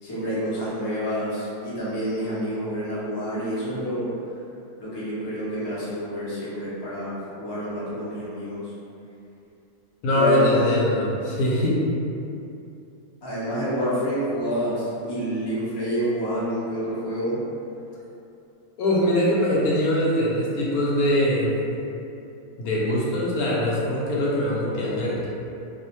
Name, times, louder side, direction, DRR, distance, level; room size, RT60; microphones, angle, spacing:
voice 1, 0.0-4.1 4.8-8.7 10.1-10.8 13.2-17.4, equal, 40° left, -10 dB, 0.3 m, -28 dB
voice 2, 10.0-11.8 18.8-21.5 22.6-25.3, left 1 dB, 75° left, -6 dB, 1.1 m, -22 dB
2.7 x 2.0 x 2.9 m, 2.7 s
omnidirectional pair, 1.7 m